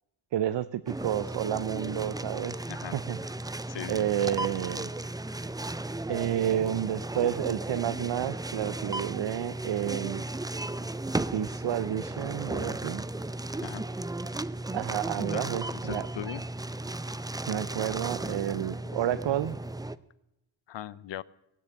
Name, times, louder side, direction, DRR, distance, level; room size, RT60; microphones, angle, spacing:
voice 1, 0.3-2.6 2.9-3.2 3.9-4.9 6.1-10.2 11.3-13.0 14.7-16.1 17.5-19.6, right 11 dB, 70° right, 16 dB, 0.6 m, -30 dB
sound 1, 0.9-20.0, right 2 dB, 10° right, 0.5 m, -35 dB
voice 2, 3.7-4.1 13.6-13.8 15.3-16.4 18.8-19.0 20.7-21.2, left 12 dB, 75° left, 18 dB, 0.6 m, -39 dB
19.5 x 6.9 x 7.9 m, 0.90 s
cardioid pair, 45°, 44 cm